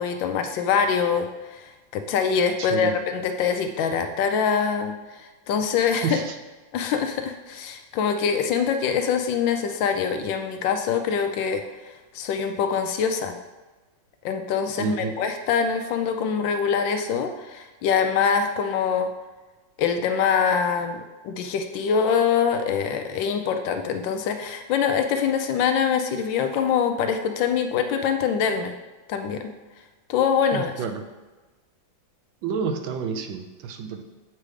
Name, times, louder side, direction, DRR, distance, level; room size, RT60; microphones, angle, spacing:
voice 1, 0.0-6.2 6.7-13.4 14.2-19.1 19.8-28.7 29.1-29.5 30.1-30.8, left 6 dB, 75° left, 6 dB, 1.2 m, -24 dB
voice 2, 2.6-3.0 6.0-6.3 14.8-15.1 30.5-31.0 32.4-34.0, right 6 dB, 75° right, 6 dB, 1.3 m, -29 dB
7.5 x 3.3 x 4.8 m, 1.2 s
omnidirectional pair, 2.2 m